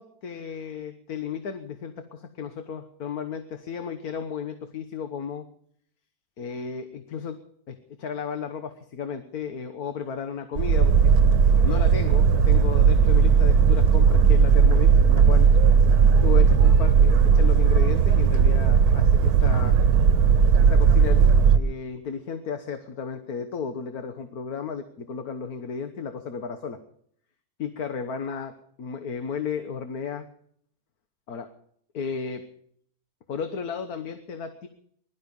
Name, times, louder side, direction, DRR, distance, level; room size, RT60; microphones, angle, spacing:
voice 1, 0.0-5.5 6.4-7.4 7.7-10.9 11.6-15.5 16.2-19.8 20.6-21.3 21.5-26.8 27.6-28.5 28.8-30.3 31.3-31.5 31.9-32.4 33.3-34.7, left 6 dB, 85° left, 8 dB, 1.7 m, -34 dB
Boat Water vehicle, 10.6-21.6, right 6 dB, 85° right, 1.3 m, -17 dB
21.0 x 13.0 x 5.4 m, 0.65 s
omnidirectional pair, 1.5 m